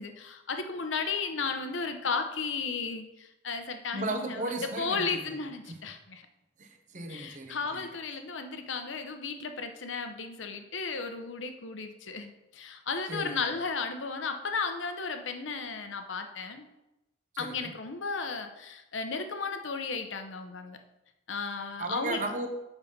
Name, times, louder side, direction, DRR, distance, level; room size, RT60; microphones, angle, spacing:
voice 1, 0.0-6.2 7.1-16.7 17.4-20.8 21.3-22.2, left 4 dB, 85° left, 7 dB, 0.9 m, -34 dB
voice 2, 3.9-5.2 5.7-5.8 6.6-7.9 13.1-13.3 17.3-17.7 21.8-22.5, right 2 dB, 40° right, 5 dB, 1.0 m, -35 dB
8.2 x 5.7 x 5.3 m, 0.95 s
head